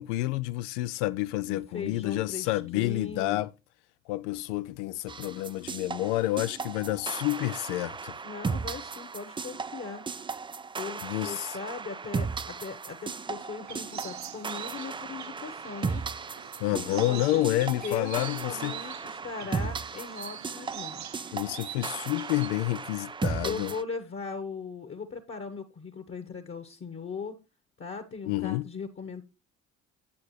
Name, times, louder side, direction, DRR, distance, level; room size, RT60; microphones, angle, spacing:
voice 1, 0.0-3.5 4.1-8.2 11.0-11.6 16.6-18.8 21.3-23.7 28.3-28.7, left 17 dB, 75° left, 0.5 m, -29 dB
voice 2, 1.5-3.4 8.2-10.0 10.7-16.0 16.7-21.2 23.4-27.4 27.8-29.2, left 5 dB, 35° left, 1.2 m, -39 dB
sound 1, 5.1-23.8, right 5 dB, 15° right, 0.4 m, -36 dB
sound 2, 13.6-22.5, right 11 dB, 50° right, 0.9 m, -45 dB
8.6 x 8.2 x 3.2 m
hypercardioid pair, 55°, 36 cm